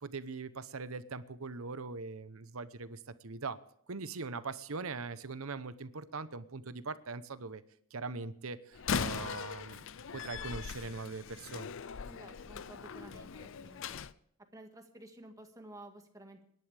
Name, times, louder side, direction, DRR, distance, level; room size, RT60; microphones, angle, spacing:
voice 1, 0.0-3.6 3.9-7.6 7.9-9.9 10.1-11.7, right 4 dB, 80° right, 13 dB, 0.9 m, -41 dB
Slam, 8.7-14.1, left 6 dB, 65° left, 0.5 m, -39 dB
voice 2, 12.1-14.0 14.5-16.4, right 1 dB, 15° right, 4 dB, 1.9 m, -52 dB
26.5 x 11.0 x 3.5 m, 0.69 s
head